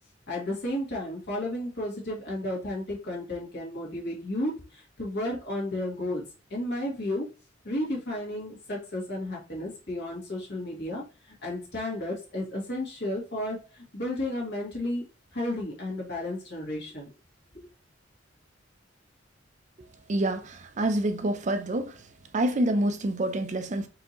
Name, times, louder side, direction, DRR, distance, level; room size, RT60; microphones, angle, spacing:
voice 1, 0.3-6.2 6.5-7.3 7.6-11.0 11.4-15.0 15.3-17.1 17.5-17.7, left 1 dB, 65° left, 2.2 m, -33 dB
voice 2, 20.1-22.0 22.3-23.9, right 1 dB, 40° right, 0.5 m, -27 dB
4.8 x 3.5 x 2.9 m
head